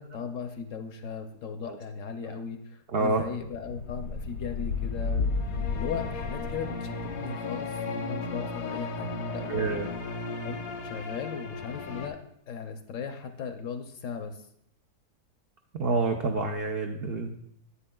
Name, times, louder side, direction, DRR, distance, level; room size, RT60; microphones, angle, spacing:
voice 1, 0.0-9.7 10.4-12.2 12.5-14.5, left 6 dB, 65° left, 7 dB, 0.8 m, -37 dB
voice 2, 2.9-3.2 9.5-9.9 15.8-17.3, right 3 dB, 80° right, 4 dB, 0.5 m, -27 dB
sound 1, 3.4-12.1, left 4 dB, 85° left, 1.4 m, -33 dB
9.9 x 8.3 x 2.2 m, 0.73 s
omnidirectional pair, 1.7 m